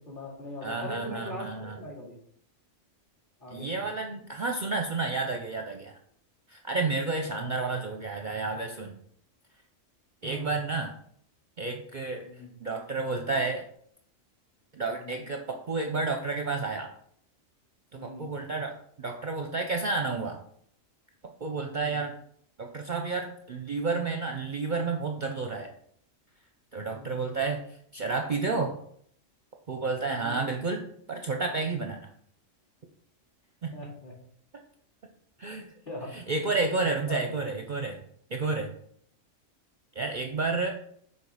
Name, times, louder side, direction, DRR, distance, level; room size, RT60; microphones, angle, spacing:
voice 1, 0.0-2.2 3.4-3.7 7.2-7.5 10.2-10.5 12.2-12.5 14.9-15.2 17.9-18.3 21.6-22.0 26.9-27.3 30.2-30.5 33.7-34.1 35.9-36.1 36.8-37.3, left 1 dB, 40° left, -5 dB, 2.7 m, -40 dB
voice 2, 0.6-1.8 3.5-6.0 6.5-9.0 10.2-10.9 11.6-12.2 12.6-13.6 14.7-16.9 17.9-20.4 21.4-22.1 22.6-25.7 26.7-27.6 27.9-28.8 29.7-32.1 33.6-33.8 35.4-35.7 36.1-38.0 38.3-38.7 39.9-40.7, right 3 dB, 45° right, 3 dB, 0.7 m, -31 dB
7.0 x 4.5 x 4.9 m, 0.66 s
omnidirectional pair, 1.3 m